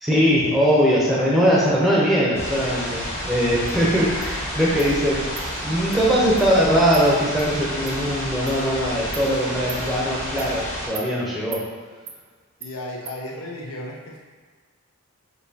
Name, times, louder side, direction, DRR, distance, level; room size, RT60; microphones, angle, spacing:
voice 1, 0.0-5.3 5.6-11.6, equal, ahead, -6 dB, 0.7 m, -20 dB
sound 1, 2.3-10.9, equal, 30° left, 1.5 m, -30 dB
Insect, 3.7-3.8 4.2-4.3 4.8-4.9 5.4-5.5 5.9-6.0 6.4-6.5 6.9-7.0 7.4-7.5 7.9-8.0 8.5-8.6 9.1-9.3 9.7-9.8 10.4-10.5 10.9-11.1 11.5-11.6 12.1-12.2 12.6-12.7 13.0-13.2, right 7 dB, 50° right, 0.4 m, -38 dB
voice 2, 12.6-14.3, left 1 dB, 80° left, -2 dB, 0.8 m, -34 dB
6.4 x 2.9 x 2.8 m, 1.5 s
head